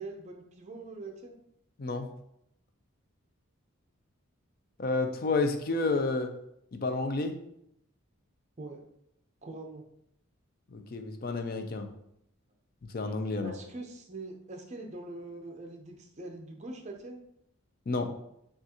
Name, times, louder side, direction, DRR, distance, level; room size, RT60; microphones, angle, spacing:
voice 1, 0.0-1.3 8.6-8.8 9.4-9.8 13.4-17.2, right 2 dB, 35° right, 2 dB, 0.6 m, -43 dB
voice 2, 4.8-6.3 6.7-7.4 10.7-11.9 12.9-13.5 17.9-18.1, left 3 dB, 45° left, 7 dB, 0.4 m, -30 dB
6.1 x 2.4 x 2.8 m, 0.77 s
head